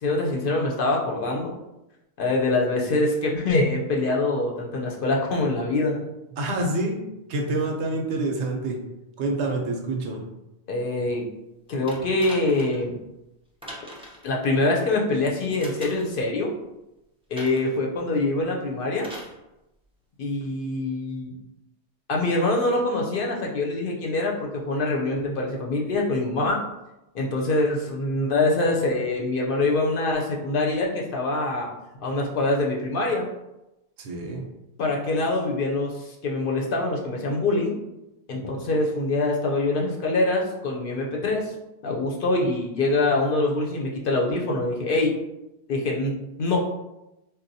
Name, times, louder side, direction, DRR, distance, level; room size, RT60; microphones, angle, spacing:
voice 1, 0.0-1.5 2.2-6.0 10.7-11.3 11.7-13.0 14.2-16.5 17.3-19.1 20.2-21.3 22.1-26.6 27.1-31.7 32.0-33.3 34.8-37.8 38.3-41.5 41.8-45.1 45.7-46.6, left 2 dB, 60° left, -1 dB, 0.7 m, -24 dB
voice 2, 6.4-7.0 7.3-8.8 9.2-10.2 34.0-34.5, right 2 dB, 85° right, 2 dB, 0.9 m, -27 dB
sound 1, 11.9-12.9 13.6-14.3 15.6-16.2 17.4-17.8 19.0-19.4 20.4-20.5, equal, 10° right, 0.3 m, -41 dB
4.0 x 2.2 x 2.6 m, 0.93 s
omnidirectional pair, 1.1 m